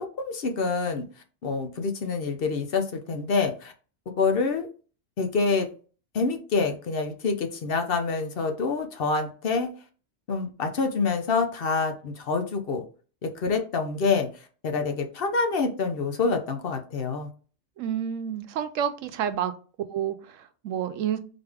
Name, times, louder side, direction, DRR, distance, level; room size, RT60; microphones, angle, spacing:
voice 1, 0.2-1.0 1.4-3.7 4.1-4.7 5.2-5.7 6.1-9.7 10.3-12.8 13.2-14.3 14.6-17.3, left 4 dB, 55° left, 0.8 m, -26 dB
voice 2, 17.8-19.5 19.9-21.2, right 9 dB, 90° right, 1.0 m, -29 dB
3.9 x 3.4 x 3.4 m
omnidirectional pair, 1.3 m